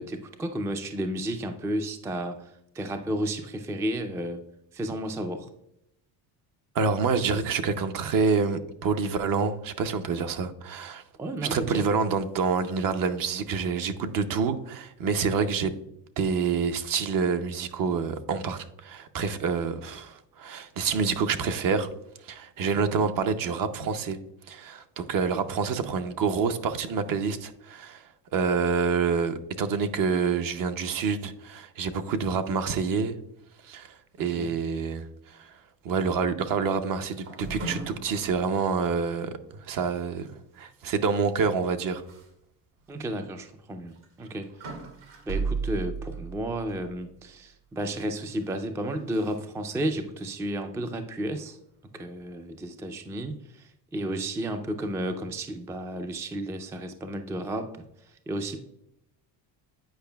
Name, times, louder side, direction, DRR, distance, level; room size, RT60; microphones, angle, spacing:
voice 1, 0.0-4.4 4.7-5.5 11.2-11.9 25.3-25.4 34.3-34.5 42.9-44.5 45.3-51.6 51.9-57.8 58.3-58.6, right 1 dB, 5° right, 0.3 m, -32 dB
voice 2, 6.7-11.0 11.5-15.7 16.2-21.9 22.2-24.2 24.5-33.2 33.6-35.6 35.8-39.3 39.6-42.0, right 5 dB, 50° right, 0.7 m, -27 dB
sound 1, 37.1-38.6 39.1-39.2 39.6-39.7 41.3-41.5 42.1-42.3 42.8-42.9 43.9-47.1 48.0-48.6 49.1-49.4, right 4 dB, 75° right, 2.1 m, -36 dB
8.8 x 4.9 x 2.2 m
cardioid pair, 105°, 42 cm